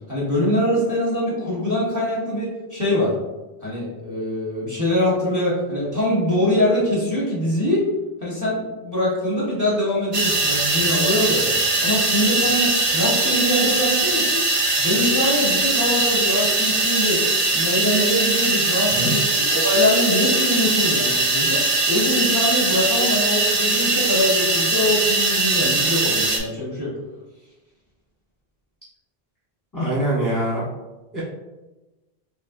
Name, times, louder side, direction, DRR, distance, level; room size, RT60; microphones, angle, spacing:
voice 1, 0.1-3.1 3.6-7.9 8.2-14.4 14.8-17.2 17.5-26.9, left 1 dB, 20° right, -6 dB, 1.1 m, -23 dB
sound 1, 10.1-26.4, right 3 dB, 40° right, 0.5 m, -21 dB
voice 2, 29.7-30.6 31.1-31.2, right 1 dB, 20° left, -8 dB, 1.0 m, -23 dB
5.1 x 2.6 x 2.6 m, 1.1 s
omnidirectional pair, 1.0 m